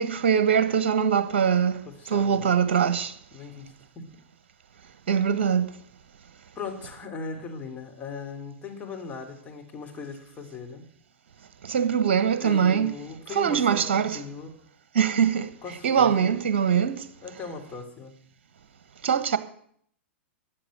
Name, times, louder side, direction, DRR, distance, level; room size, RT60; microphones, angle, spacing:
voice 1, 0.0-3.1 5.1-5.7 11.6-12.9 13.3-14.2 14.9-15.5 15.8-17.0 19.0-19.4, right 7 dB, 55° right, 1.3 m, -22 dB
voice 2, 1.9-2.6 3.3-4.1 6.5-10.8 12.4-14.5 15.6-16.3 17.2-18.1, left 4 dB, 20° left, 3.0 m, -38 dB
13.5 x 8.9 x 9.1 m
figure-of-eight pair, 100°, 7 cm